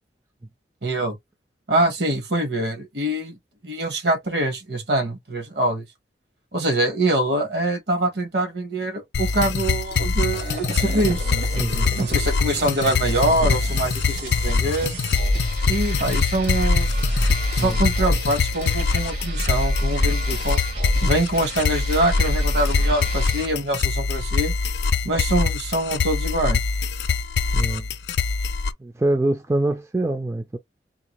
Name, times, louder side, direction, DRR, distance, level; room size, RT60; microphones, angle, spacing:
voice 1, 0.8-1.2 1.7-3.4 3.6-5.9 6.5-11.3 12.0-14.9 15.7-17.0 17.5-20.6 21.0-24.5 25.0-26.6, right 1 dB, 70° right, 1.2 m, -24 dB
sound 1, 9.1-28.7, left 4 dB, 75° left, 0.5 m, -24 dB
sound 2, 10.3-23.5, equal, 85° right, 2.1 m, -28 dB
voice 2, 11.5-11.9 13.4-13.5 17.6-17.8 27.5-27.8 28.8-30.6, right 2 dB, 15° right, 0.4 m, -24 dB
3.9 x 2.2 x 2.9 m
head